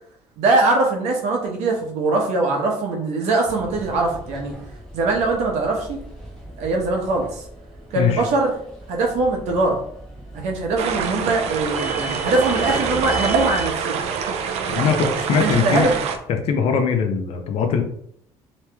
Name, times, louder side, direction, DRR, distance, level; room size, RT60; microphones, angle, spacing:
voice 1, 0.4-4.5 4.9-6.0 6.6-7.4 7.9-8.5 8.9-9.8 10.3-14.1 15.4-16.0, right 3 dB, 90° right, 1 dB, 1.0 m, -22 dB
sound 1, 3.5-13.7, equal, 5° left, 1.1 m, -37 dB
sound 2, 10.8-16.2, right 6 dB, 70° right, 0.5 m, -25 dB
voice 2, 14.7-15.9 16.3-17.8, left 6 dB, 65° left, 6 dB, 0.7 m, -21 dB
3.1 x 3.0 x 3.4 m, 0.68 s
cardioid pair, 145°, 11 cm